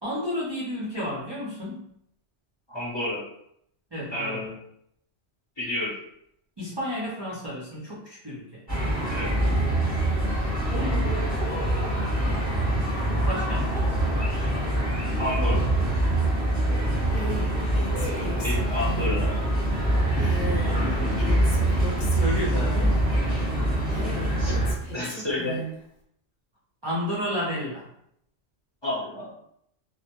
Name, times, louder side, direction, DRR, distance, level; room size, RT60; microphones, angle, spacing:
voice 1, 0.0-1.8 3.9-4.5 6.6-8.6 10.7-11.2 13.3-14.2 17.2-17.5 22.1-23.0 26.8-27.9, equal, 35° right, -8 dB, 0.4 m, -32 dB
voice 2, 2.7-3.2 4.1-4.5 5.6-5.9 9.1-9.4 15.2-15.6 18.4-19.8 22.5-22.9 24.4-24.6 24.9-25.6 28.8-29.3, left 1 dB, 25° left, -8 dB, 0.7 m, -31 dB
sound 1, 8.7-24.7, right 1 dB, 20° right, 0.8 m, -24 dB
Female speech woman speaking, 17.1-19.2 20.2-23.1 23.9-25.8, equal, 65° left, 0.8 m, -36 dB
2.1 x 2.1 x 2.8 m, 0.72 s
omnidirectional pair, 1.2 m